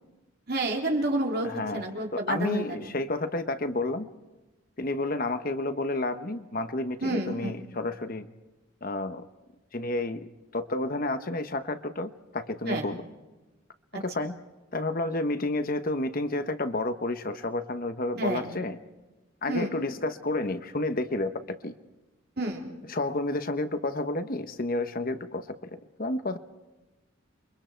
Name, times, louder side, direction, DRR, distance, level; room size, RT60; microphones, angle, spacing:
voice 1, 0.5-2.9 7.0-7.6 12.7-12.9 13.9-14.0 18.2-18.5 19.5-19.7 22.4-22.7, right 1 dB, 50° right, 1 dB, 3.6 m, -30 dB
voice 2, 1.4-4.1 4.8-8.3 8.8-9.3 9.7-10.3 10.5-13.0 13.9-14.3 14.7-18.8 19.4-21.7 22.9-26.4, left 2 dB, 45° left, 9 dB, 1.0 m, -30 dB
29.0 x 23.5 x 4.6 m, 1.1 s
head